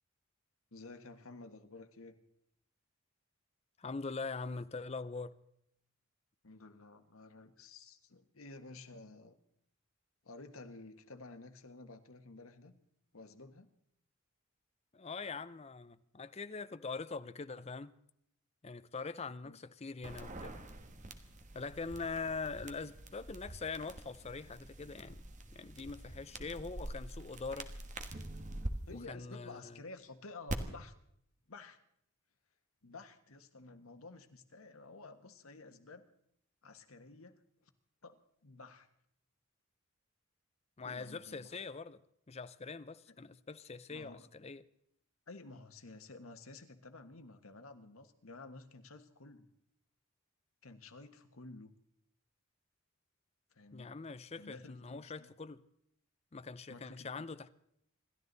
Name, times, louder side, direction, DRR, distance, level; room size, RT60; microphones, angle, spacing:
voice 1, 0.7-2.2 6.4-9.4 10.2-12.7 13.1-13.7 19.4-19.6 28.9-30.9 31.5-31.8 32.8-36.1 36.6-37.7 38.0-38.9 40.8-41.5 43.9-44.3 45.3-49.5 50.6-51.7 53.5-53.9 54.4-55.3 56.7-57.1, left 3 dB, 85° left, 1.5 m, -52 dB
voice 2, 3.8-5.4 14.9-17.9 18.6-20.7 21.5-25.2 25.5-27.8 28.9-29.8 40.8-42.0 42.3-44.6 53.7-55.6 56.3-57.5, left 4 dB, 30° left, 0.6 m, -43 dB
sound 1, 20.0-28.7 30.5-30.6, right 1 dB, 35° right, 1.3 m, -45 dB
27.0 x 12.5 x 4.0 m
head